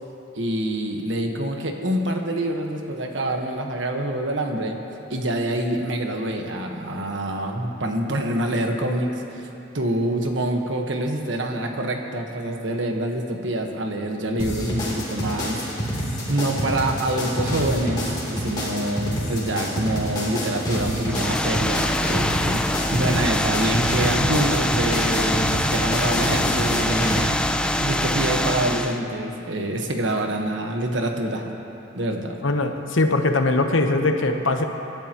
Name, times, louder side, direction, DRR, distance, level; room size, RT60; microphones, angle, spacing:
voice 1, 0.3-4.8 5.1-9.5 9.7-15.6 15.9-27.3 27.8-31.5 31.9-32.4, right 1 dB, 70° right, 3 dB, 1.3 m, -26 dB
sound 1, 14.4-27.2, equal, 25° left, 3.1 m, -27 dB
sound 2, 21.0-29.0, left 1 dB, 5° left, 0.4 m, -24 dB
voice 2, 32.4-34.6, left 2 dB, 85° left, 5 dB, 1.0 m, -21 dB
26.0 x 12.0 x 3.0 m, 3.0 s
head